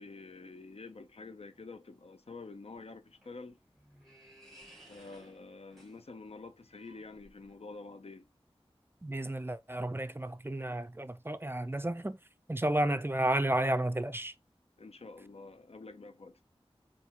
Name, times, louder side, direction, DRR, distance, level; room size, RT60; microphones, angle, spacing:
voice 1, 0.0-3.6 4.9-8.3 14.8-16.4, left 3 dB, 80° left, 0.6 m, -48 dB
sound 1, 3.0-7.7, equal, ahead, 2.0 m, -59 dB
voice 2, 9.0-12.2 12.5-14.3, right 1 dB, 20° right, 0.4 m, -32 dB
4.3 x 2.6 x 3.6 m
wide cardioid pair, 45°, 10 cm